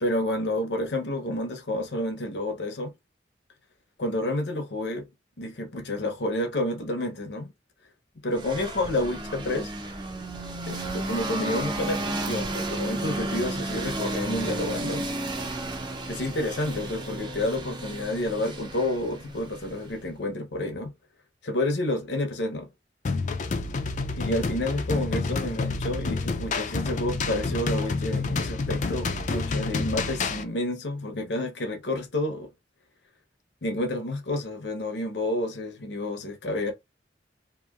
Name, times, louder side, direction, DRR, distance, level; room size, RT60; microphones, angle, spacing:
voice 1, 0.0-2.9 4.0-5.1 5.4-7.5 8.2-9.7 10.7-15.1 16.1-20.9 21.4-22.7 24.1-32.5 33.6-36.7, left 1 dB, 75° left, 0.8 m, -29 dB
sound 1, 8.4-20.1, right 1 dB, 25° right, 0.6 m, -33 dB
sound 2, 23.0-30.4, left 3 dB, 45° left, 0.4 m, -29 dB
3.0 x 2.6 x 2.4 m
head